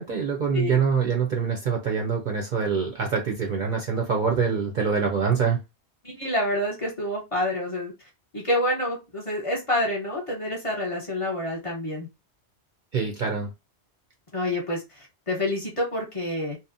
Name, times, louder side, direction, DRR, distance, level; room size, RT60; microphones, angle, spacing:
voice 1, 0.0-5.6 12.9-13.5, right 6 dB, 55° right, 1 dB, 0.6 m, -25 dB
voice 2, 6.0-7.9 8.3-12.1 14.3-16.6, left 1 dB, 35° left, -2 dB, 0.8 m, -28 dB
2.8 x 2.0 x 2.5 m, 0.25 s
omnidirectional pair, 1.1 m